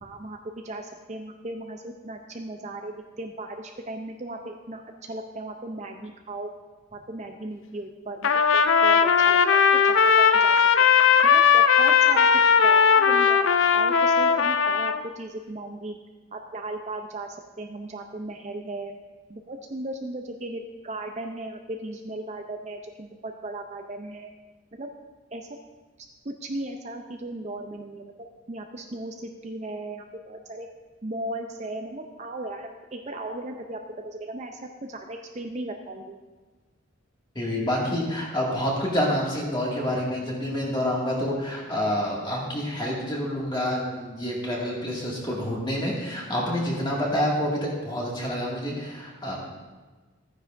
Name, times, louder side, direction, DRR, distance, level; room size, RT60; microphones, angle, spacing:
voice 1, 0.0-4.8 5.1-6.5 6.9-10.6 11.2-16.0 16.3-18.9 19.3-24.3 24.7-24.9 25.3-25.5 26.2-30.7 31.0-33.8 34.0-36.2, right 2 dB, 35° right, 4 dB, 0.5 m, -36 dB
Trumpet, 8.2-15.0, left 6 dB, 70° left, 0.4 m, -18 dB
voice 2, 37.4-49.4, equal, 20° left, -4 dB, 2.0 m, -28 dB
14.0 x 9.6 x 2.6 m, 1.3 s
head